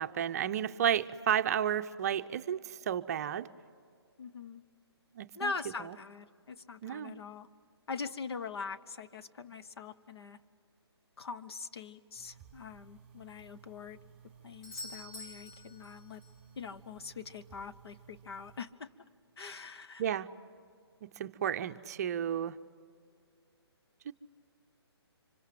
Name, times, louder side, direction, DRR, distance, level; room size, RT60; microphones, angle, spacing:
voice 1, 0.0-3.5 5.2-5.5 6.8-7.2 20.0-20.3 21.0-22.6 24.1-24.2, right 9 dB, 35° right, 11 dB, 0.7 m, -32 dB
voice 2, 4.2-4.6 5.3-7.5 7.9-10.4 11.2-14.0 14.4-16.2 16.6-18.9 19.4-20.0, left 5 dB, 65° left, 10 dB, 1.2 m, -42 dB
sound 1, 12.2-18.6, right 8 dB, 5° right, 4.2 m, -57 dB
Doorbell, 14.6-16.5 20.5-20.6, left 2 dB, 50° left, 5.3 m, -47 dB
25.5 x 24.5 x 7.6 m, 2.3 s
hypercardioid pair, 150°, 14 cm